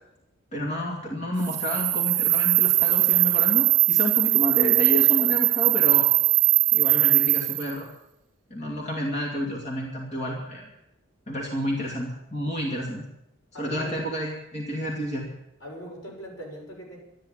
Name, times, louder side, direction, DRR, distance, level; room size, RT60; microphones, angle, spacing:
voice 1, 0.5-6.1 6.7-7.9 8.5-10.7 11.3-13.0 13.5-15.3, equal, 35° left, -2 dB, 2.5 m, -30 dB
sound 1, 1.4-7.7, right 18 dB, 60° right, 0.7 m, -20 dB
voice 2, 13.5-14.0 15.6-17.0, equal, 75° left, -2 dB, 6.5 m, -40 dB
13.0 x 11.0 x 8.9 m, 0.85 s
head